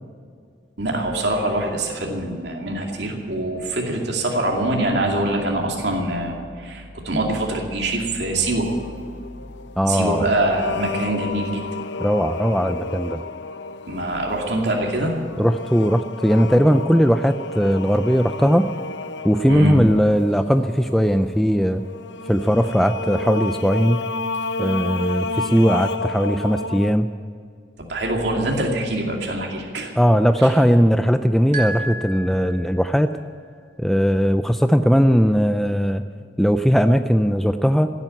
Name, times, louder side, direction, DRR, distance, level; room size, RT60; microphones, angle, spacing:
voice 1, 0.8-8.7 9.9-11.6 13.9-15.1 19.5-19.7 27.8-29.9, right 1 dB, 70° right, -1 dB, 2.5 m, -24 dB
sound 1, 8.4-26.9, left 3 dB, 80° left, 0.7 m, -32 dB
voice 2, 9.8-10.3 12.0-13.2 15.4-18.7 19.2-21.8 22.3-24.0 24.6-27.1 30.0-33.1 33.8-36.0 36.4-37.9, equal, ahead, 8 dB, 0.4 m, -18 dB
sound 2, 31.5-33.1, right 2 dB, 45° right, 2.9 m, -31 dB
16.5 x 9.2 x 9.0 m, 2.2 s
head